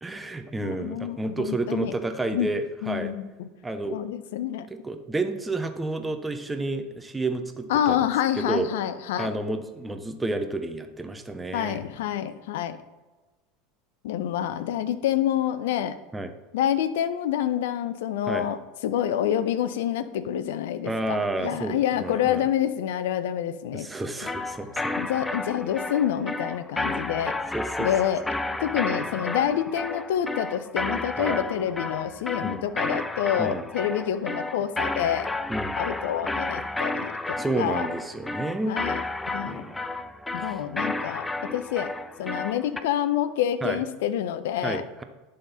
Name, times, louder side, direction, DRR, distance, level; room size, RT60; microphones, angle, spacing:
voice 1, 0.0-3.1 3.6-4.0 4.7-8.1 8.4-8.7 9.2-11.8 16.1-16.3 18.3-18.5 20.8-22.4 23.7-24.8 27.5-27.9 31.2-31.4 32.4-32.6 33.4-33.6 35.5-35.8 37.4-38.8 39.5-39.9 40.4-40.6 43.6-43.8 44.6-45.0, right 2 dB, 10° right, 7 dB, 0.8 m, -30 dB
voice 2, 0.6-1.9 2.3-2.5 2.8-3.5 3.9-4.7 7.7-9.4 11.5-12.8 14.0-16.0 16.5-18.6 18.8-23.9 25.0-27.3 27.8-35.3 35.8-37.9 38.7-39.0 39.3-39.6 40.3-41.9 42.2-44.8, left 10 dB, 70° left, 13 dB, 0.5 m, -27 dB
sound 1, 24.2-42.8, left 2 dB, 10° left, 0.4 m, -32 dB
11.0 x 3.8 x 4.1 m, 1.2 s
hypercardioid pair, 85°, 0 cm